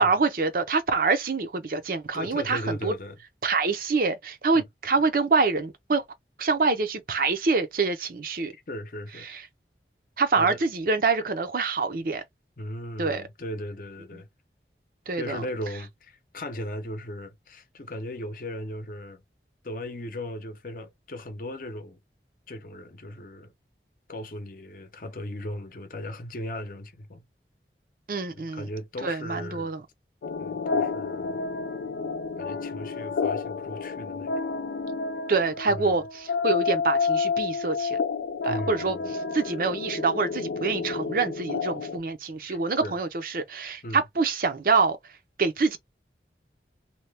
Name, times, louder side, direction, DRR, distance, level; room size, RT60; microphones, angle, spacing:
voice 1, 0.0-2.9 3.4-6.0 6.4-8.5 9.3-9.4 10.2-12.2 13.0-13.2 15.1-15.4 28.1-28.7 29.0-29.8 35.3-38.0 38.4-39.0 39.3-45.0 45.4-45.8, right 4 dB, 50° right, 0.6 m, -25 dB
voice 2, 2.1-3.2 8.7-9.3 10.4-10.6 12.6-14.3 15.2-19.2 19.6-22.0 22.5-23.5 24.1-27.2 28.3-29.7 30.4-31.4 32.4-34.3 35.7-36.1 38.5-39.1 42.4-43.0 43.8-44.0, left 1 dB, 50° left, 0.7 m, -37 dB
sound 1, 30.2-42.0, left 5 dB, 70° left, 0.3 m, -30 dB
2.8 x 2.2 x 3.2 m
head